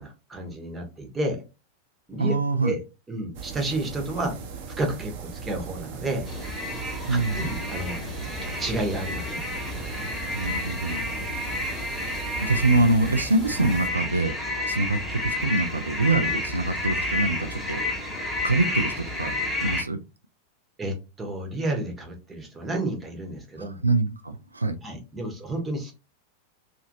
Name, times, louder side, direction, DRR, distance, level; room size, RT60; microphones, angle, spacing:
voice 1, 0.0-1.4 2.1-2.8 3.1-4.4 4.8-6.3 7.1-8.0 8.4-9.4 16.3-16.4 20.8-23.8 24.8-25.9, right 1 dB, 15° right, 0.9 m, -31 dB
voice 2, 2.2-2.8 7.1-7.6 10.3-11.1 12.4-19.3 19.6-20.0 23.6-24.8, right 2 dB, 80° right, 0.3 m, -25 dB
sound 1, 3.3-13.9, right 5 dB, 50° right, 0.6 m, -38 dB
sound 2, 6.2-19.8, left 2 dB, 5° left, 1.2 m, -30 dB
2.9 x 2.5 x 2.7 m
figure-of-eight pair, 90°, 0 cm